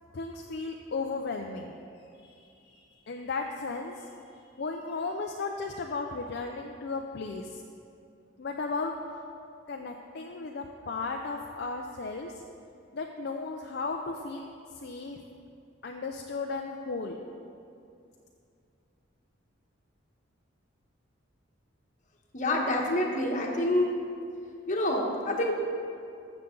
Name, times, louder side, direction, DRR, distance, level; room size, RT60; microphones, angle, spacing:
voice 1, 0.1-1.8 2.2-4.1 4.6-7.6 8.4-8.9 9.7-12.3 12.9-14.5 14.8-15.2 15.8-17.2, left 4 dB, 55° left, 2 dB, 0.5 m, -35 dB
voice 2, 22.3-24.0 24.7-25.5, left 1 dB, 40° left, 0 dB, 1.2 m, -27 dB
13.5 x 6.8 x 3.8 m, 2.5 s
head